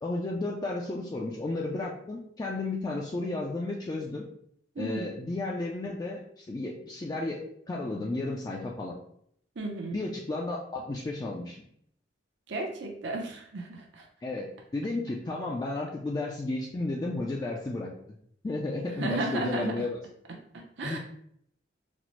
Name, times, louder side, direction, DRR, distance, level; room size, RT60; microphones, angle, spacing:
voice 1, 0.0-4.3 4.8-8.9 9.9-11.6 14.2-14.5 14.7-17.9 18.4-20.0 20.8-21.0, left 2 dB, 20° left, -2 dB, 0.3 m, -33 dB
voice 2, 4.8-5.1 9.6-10.0 12.5-14.1 18.8-19.9 20.5-21.0, right 2 dB, 70° right, 1 dB, 0.6 m, -34 dB
4.1 x 2.0 x 3.0 m, 0.68 s
head